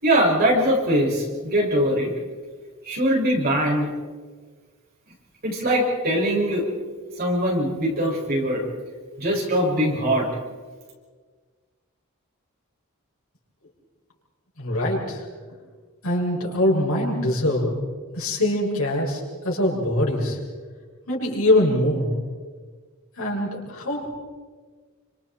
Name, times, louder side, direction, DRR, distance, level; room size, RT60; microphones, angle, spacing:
voice 1, 0.0-2.1 2.8-3.9 5.4-6.6 7.2-8.6 9.2-10.3, equal, 45° right, -3 dB, 6.4 m, -22 dB
voice 2, 14.6-15.2 16.0-17.7 18.1-20.4 21.1-22.1 23.2-24.1, left 1 dB, 70° left, -2 dB, 6.8 m, -23 dB
29.0 x 26.0 x 4.5 m, 1.5 s
head